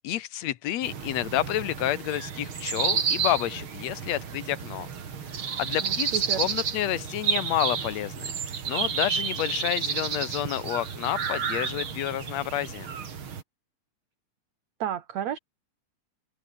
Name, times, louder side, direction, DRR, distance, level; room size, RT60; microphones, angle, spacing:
voice 1, 0.0-4.9 5.6-8.3 8.6-12.9, left 13 dB, 65° left, 1.9 m, -29 dB
sound 1, 0.8-13.4, right 7 dB, 40° right, 2.6 m, -31 dB
voice 2, 5.8-6.4 14.8-15.4, right 10 dB, 60° right, 2.8 m, -32 dB
open air
omnidirectional pair, 3.9 m